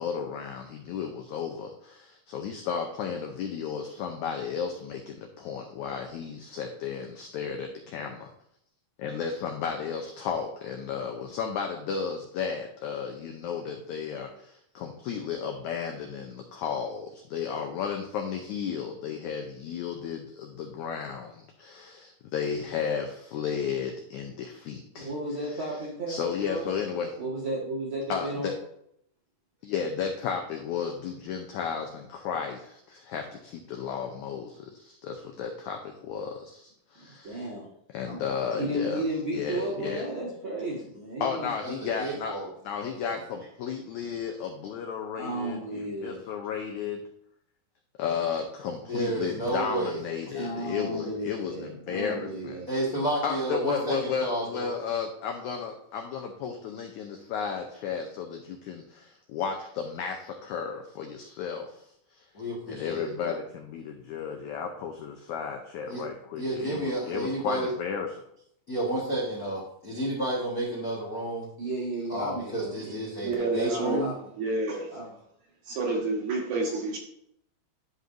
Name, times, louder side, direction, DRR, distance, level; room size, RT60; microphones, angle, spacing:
voice 1, 0.0-8.3 9.0-25.1 25.5-25.6 26.1-27.1 28.1-28.5 29.6-37.4 37.9-39.0 39.3-40.0 41.2-42.4 42.6-47.0 48.0-52.7 53.2-62.2 62.7-68.1, left 6 dB, 85° left, 3 dB, 1.7 m, -33 dB
voice 2, 24.9-26.7 27.2-28.5 37.0-37.7 38.0-38.2 38.6-41.5 45.1-46.2 46.7-46.8 50.3-52.7 71.6-73.0 73.3-74.3 74.9-75.1, right 1 dB, 50° right, -4 dB, 1.6 m, -34 dB
voice 3, 42.0-42.5 48.9-50.0 52.7-54.7 62.3-63.1 65.9-66.0 66.4-67.7 68.7-71.5 72.1-74.1, right 1 dB, 55° left, -6 dB, 0.9 m, -31 dB
voice 4, 73.2-74.1 74.4-74.9 75.7-77.0, right 2 dB, 65° right, 0 dB, 2.3 m, -29 dB
11.5 x 5.2 x 2.6 m, 0.74 s
omnidirectional pair, 4.2 m